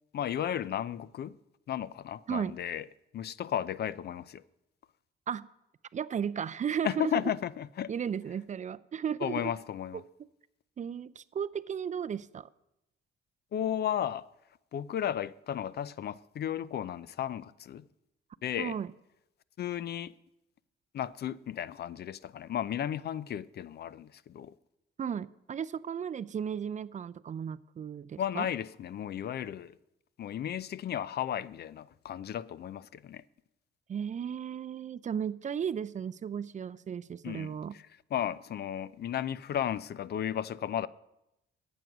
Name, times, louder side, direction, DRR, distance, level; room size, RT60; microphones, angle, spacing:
voice 1, 0.1-1.4 1.7-2.8 3.1-4.4 6.8-7.9 9.2-10.0 13.5-14.3 14.7-17.8 18.4-18.7 19.6-20.1 20.9-24.5 28.2-29.8 30.2-33.2 37.2-37.8 38.1-40.9, left 10 dB, 55° left, 0.5 m, -34 dB
voice 2, 5.9-7.1 7.9-9.5 10.8-12.5 18.6-18.9 25.0-28.5 33.9-37.8, right 8 dB, 40° right, 0.4 m, -35 dB
14.5 x 8.0 x 6.0 m
cardioid pair, 90°, 20 cm